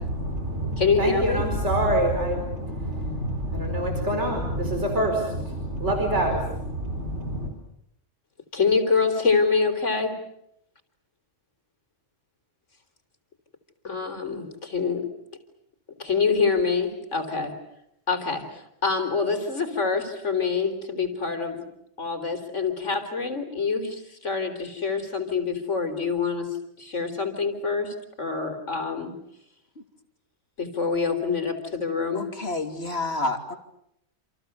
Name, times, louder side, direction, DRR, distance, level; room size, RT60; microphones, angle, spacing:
voice 1, 0.0-7.5, right 1 dB, 65° right, 3 dB, 5.1 m, -26 dB
voice 2, 0.8-1.4 8.5-10.2 13.8-15.1 16.0-17.5 18.1-21.7 22.0-29.2 30.6-32.3, left 5 dB, 75° left, 7 dB, 4.2 m, -26 dB
voice 3, 32.1-33.6, left 2 dB, 55° left, 5 dB, 3.1 m, -29 dB
29.0 x 28.5 x 6.9 m, 0.78 s
omnidirectional pair, 1.3 m